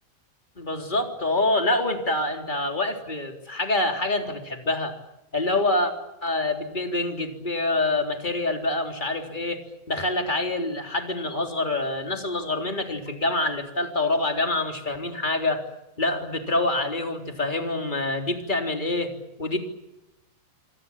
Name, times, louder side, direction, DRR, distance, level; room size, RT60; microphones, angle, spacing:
voice 1, 0.6-4.9 5.3-5.9 6.2-9.6 9.9-15.6 16.0-19.1 19.4-19.6, left 2 dB, 10° left, 4 dB, 3.0 m, -26 dB
26.5 x 26.5 x 7.3 m, 0.92 s
omnidirectional pair, 5.1 m